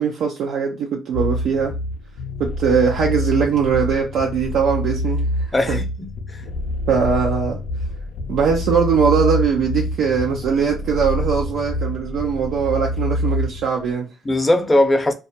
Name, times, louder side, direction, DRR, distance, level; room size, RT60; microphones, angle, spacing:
voice 1, 0.0-1.7 2.4-5.8 6.9-7.6 8.3-14.1, right 6 dB, 80° right, 0.5 m, -21 dB
sound 1, 1.1-13.7, left 1 dB, 85° left, 0.4 m, -26 dB
voice 2, 5.5-6.4 14.2-15.1, left 1 dB, 20° left, 0.5 m, -19 dB
2.3 x 2.0 x 2.7 m
cardioid pair, 90°, 0 cm